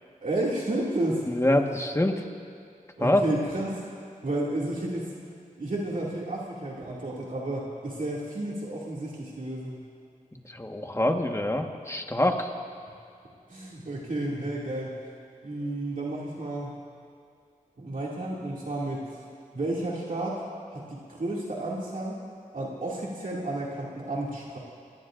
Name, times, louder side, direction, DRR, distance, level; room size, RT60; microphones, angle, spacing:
voice 1, 0.2-1.2 3.0-3.8 4.2-5.1 5.6-9.8 13.5-15.0 15.4-16.7 17.8-19.1 19.5-20.4 20.7-22.2 22.5-24.6, right 1 dB, 65° right, -5 dB, 2.4 m, -31 dB
voice 2, 1.3-2.2 3.0-3.2 10.3-12.5, left 1 dB, 20° left, 3 dB, 1.4 m, -25 dB
29.5 x 18.0 x 2.6 m, 2.4 s
wide cardioid pair, 55°, 14 cm